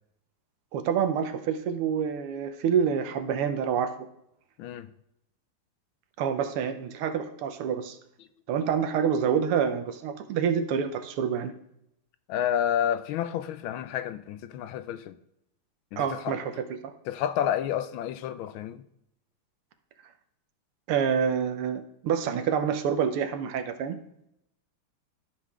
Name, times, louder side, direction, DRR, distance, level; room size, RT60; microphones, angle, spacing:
voice 1, 0.7-3.9 6.2-8.0 8.5-11.5 16.0-16.5 16.8-16.9 20.9-24.0, right 7 dB, 85° right, 1.7 m, -27 dB
voice 2, 4.6-4.9 12.3-15.2 15.9-16.4 17.1-18.8, left 10 dB, 75° left, 1.3 m, -30 dB
13.0 x 5.7 x 3.6 m
omnidirectional pair, 2.4 m